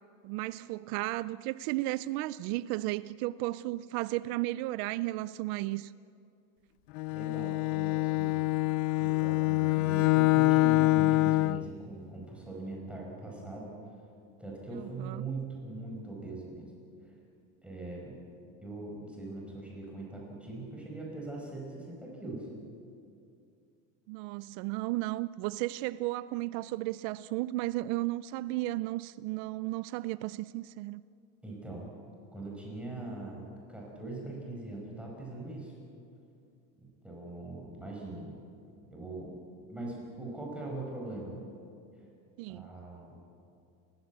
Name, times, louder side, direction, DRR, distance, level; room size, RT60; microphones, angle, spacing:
voice 1, 0.2-5.9 15.0-15.2 24.1-31.0 42.4-42.7, right 18 dB, 75° right, 0.6 m, -34 dB
Bowed string instrument, 6.9-11.7, left 21 dB, 90° left, 0.5 m, -25 dB
voice 2, 7.1-8.5 9.0-13.7 14.4-16.7 17.0-17.1 17.6-18.2 18.6-22.5 31.4-31.9 32.3-33.4 33.7-35.7 36.8-38.4 38.9-39.3 39.7-41.5 42.5-43.2, right 2 dB, 5° right, 5.2 m, -41 dB
30.0 x 15.5 x 8.4 m
cardioid pair, 155°, 36 cm